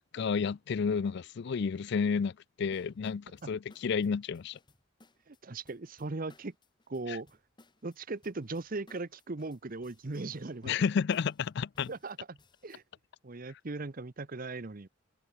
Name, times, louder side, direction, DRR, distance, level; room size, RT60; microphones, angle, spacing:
voice 1, 0.0-4.6 7.1-7.2 10.6-11.9, left 6 dB, 55° left, 0.4 m, -31 dB
sound 1, 2.7-12.8, left 2 dB, 25° left, 1.8 m, -63 dB
voice 2, 5.3-6.5 6.9-7.3 7.8-10.7 11.9-12.4 12.6-12.8 13.2-14.9, right 3 dB, 45° right, 0.9 m, -38 dB
head